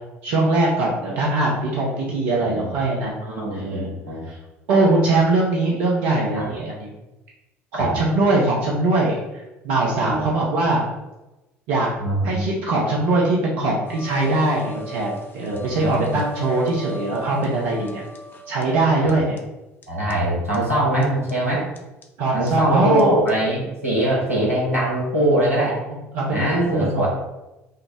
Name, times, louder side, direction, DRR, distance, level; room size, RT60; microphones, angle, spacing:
voice 1, 0.2-3.2 3.5-3.9 4.3-4.4 4.7-6.9 7.7-10.8 11.7-11.9 12.2-18.0 18.5-19.4 22.2-23.2 25.6-27.1, right 2 dB, 60° right, -3 dB, 0.8 m, -21 dB
voice 2, 2.4-2.7 3.2-4.3 6.3-6.5 7.7-7.9 10.0-10.3 12.0-12.3 15.8-16.2 19.9-21.7 22.3-25.8 26.3-27.1, right 1 dB, 90° right, -5 dB, 1.4 m, -22 dB
sound 1, 13.9-18.6 19.1-19.2 19.4-19.5 19.8-19.9 20.1-20.2 20.5-20.6 21.0-21.3 21.8-22.0 22.5-22.6 23.0-23.1 23.3-23.4, right 1 dB, 30° left, 0.6 m, -37 dB
5.5 x 2.1 x 3.4 m, 1.0 s
figure-of-eight pair, 60°, 7 cm